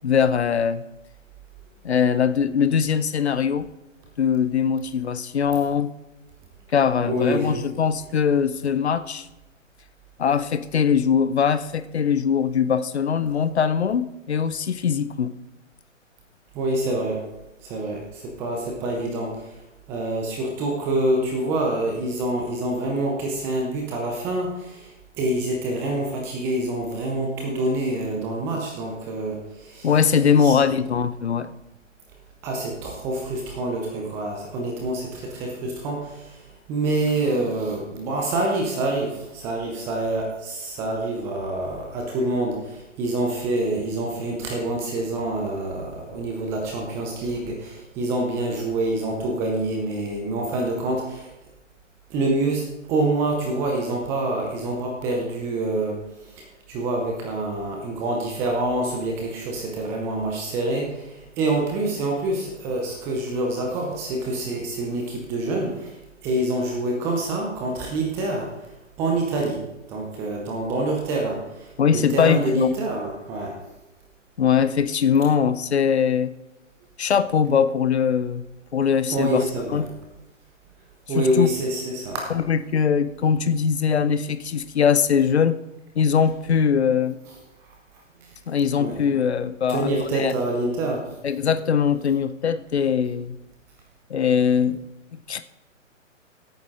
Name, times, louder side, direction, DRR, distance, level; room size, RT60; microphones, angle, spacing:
voice 1, 0.0-0.9 1.8-3.7 4.2-5.9 6.7-9.3 10.2-15.3 29.8-31.5 71.8-72.7 74.4-76.3 77.0-78.4 78.7-79.4 79.7-79.9 81.2-81.5 82.3-85.6 86.0-87.2 88.5-90.3 91.2-93.4 94.1-94.8 95.1-95.4, left 7 dB, 55° left, 14 dB, 0.8 m, -21 dB
voice 2, 7.0-7.6 16.5-17.2 17.6-19.3 19.9-24.9 25.2-29.9 30.4-30.7 32.4-36.4 36.7-51.3 52.1-56.0 56.4-65.9 66.2-68.5 69.0-69.6 69.9-73.5 79.1-79.8 81.1-82.3 88.8-89.0 89.7-91.1, right 2 dB, 5° right, 0 dB, 0.6 m, -26 dB
16.0 x 8.9 x 3.8 m, 0.97 s
figure-of-eight pair, 135°, 39 cm